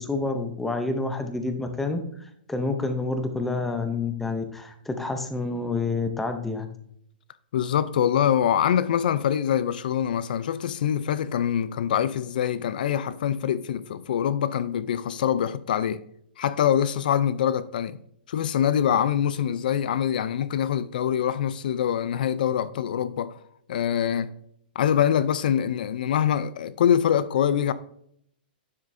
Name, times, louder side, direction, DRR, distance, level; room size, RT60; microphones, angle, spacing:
voice 1, 0.0-6.7, left 3 dB, 5° left, 0.5 m, -28 dB
voice 2, 7.5-16.0 16.4-18.0 18.3-23.4 23.7-24.3 24.8-27.7, left 9 dB, 60° left, 0.4 m, -24 dB
9.7 x 7.4 x 2.6 m
hypercardioid pair, 170°, 5 cm